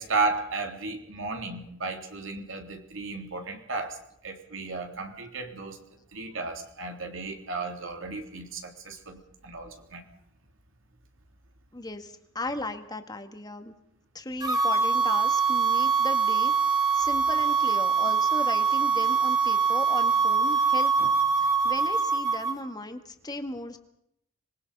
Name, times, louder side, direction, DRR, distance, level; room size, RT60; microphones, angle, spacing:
voice 1, 0.0-4.0 4.2-5.8 6.1-10.0 21.0-21.1, right 3 dB, 65° right, 4 dB, 3.5 m, -34 dB
voice 2, 11.7-13.7 14.1-20.9 21.4-23.8, left 2 dB, 20° left, 7 dB, 2.0 m, -36 dB
sound 1, 14.4-22.6, right 5 dB, 20° right, 2.8 m, -24 dB
26.0 x 21.0 x 5.6 m, 0.76 s
head